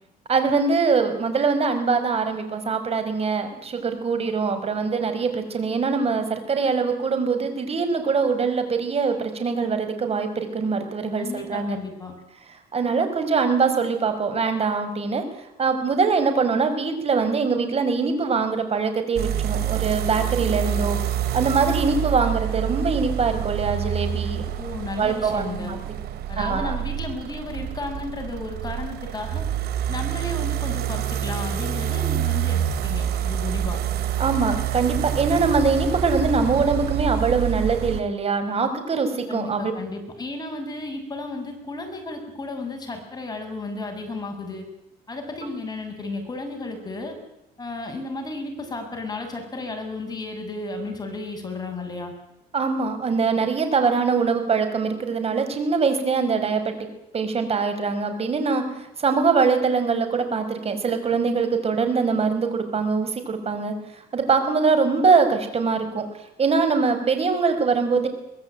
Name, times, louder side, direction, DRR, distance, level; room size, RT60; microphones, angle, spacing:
voice 1, 0.3-11.8 12.7-15.2 15.6-21.0 21.3-24.4 25.0-25.8 26.4-26.8 34.2-39.7 52.5-56.7 57.1-58.6 59.0-63.7 64.1-66.1 66.4-68.1, right 4 dB, 35° right, 8 dB, 5.3 m, -23 dB
voice 2, 11.2-12.1 24.6-25.7 26.3-29.5 29.9-33.8 39.3-44.6 45.1-47.2 47.6-52.1, left 3 dB, 25° left, 4 dB, 7.5 m, -33 dB
sound 1, 19.2-38.0, right 10 dB, 70° right, 2.7 m, -27 dB
24.0 x 20.0 x 9.2 m, 0.88 s
cardioid pair, 110°, 17 cm